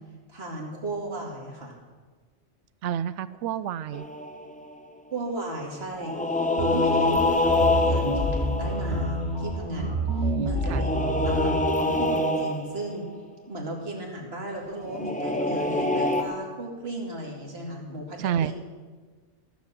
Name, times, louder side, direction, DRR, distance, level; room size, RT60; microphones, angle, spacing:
voice 1, 0.3-1.8 5.1-6.1 6.6-10.0 10.4-10.9 11.3-13.0 13.5-18.5, right 1 dB, 60° right, -1 dB, 2.6 m, -35 dB
voice 2, 2.8-4.1 9.7-10.8 18.2-18.5, right 9 dB, 85° right, 15 dB, 0.9 m, -30 dB
sound 1, 3.9-4.8 6.0-9.5 10.5-13.0 14.8-16.2, left 2 dB, 10° left, 0.8 m, -26 dB
sound 2, 6.6-11.6, right 1 dB, 35° right, 2.8 m, -28 dB
14.5 x 7.4 x 7.5 m, 1.4 s
omnidirectional pair, 1.2 m